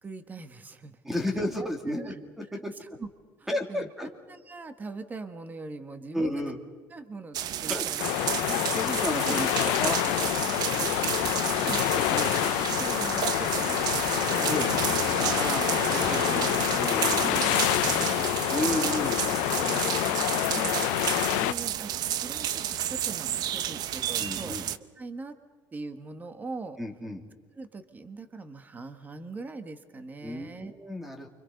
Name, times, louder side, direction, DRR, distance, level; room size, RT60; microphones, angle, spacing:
voice 1, 0.0-1.0 1.3-2.2 2.5-3.1 3.4-6.4 6.9-8.6 9.2-9.3 11.4-14.8 15.2-16.5 17.8-18.3 18.7-18.9 19.6-20.2 20.5-20.8 21.2-21.9 22.2-24.6 25.0-25.4 25.7-26.8 27.6-30.7, right 3 dB, 20° right, 9 dB, 1.7 m, -41 dB
voice 2, 1.0-2.4 3.5-4.1 6.1-6.6 7.7-8.1 8.4-11.4 14.5-14.7 15.2-17.4 18.5-19.2 24.2-24.7 26.8-27.2 30.2-31.3, left 1 dB, 5° right, 4 dB, 3.1 m, -33 dB
sound 1, 7.3-24.8, right 11 dB, 55° right, 0.9 m, -31 dB
sound 2, 8.0-21.5, left 19 dB, 90° left, 0.6 m, -27 dB
29.5 x 25.0 x 5.4 m, 1.5 s
cardioid pair, 130°, 8 cm